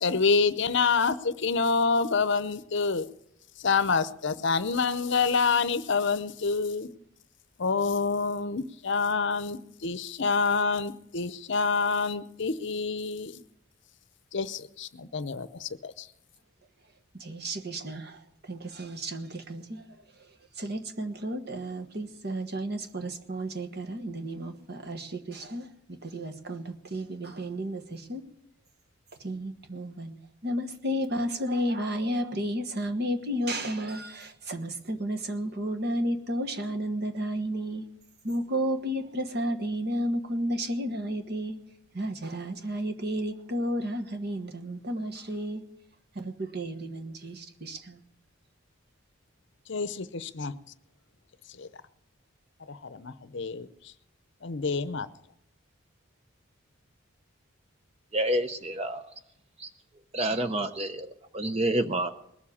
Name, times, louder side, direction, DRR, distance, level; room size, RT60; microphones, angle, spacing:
voice 1, 0.0-3.1 3.6-6.9 7.6-13.4 14.3-16.1 49.7-50.5 51.6-51.7 52.7-53.7 54.4-55.1, left 4 dB, 60° left, 14 dB, 0.7 m, -27 dB
voice 2, 17.2-18.2 18.5-19.8 20.6-28.2 29.2-37.8 38.2-41.6 41.9-45.6 46.1-48.0, equal, 50° right, 6 dB, 1.4 m, -32 dB
voice 3, 58.1-59.0 60.1-61.1 61.3-62.1, right 1 dB, 30° right, 8 dB, 0.6 m, -28 dB
20.0 x 7.4 x 8.4 m, 0.78 s
head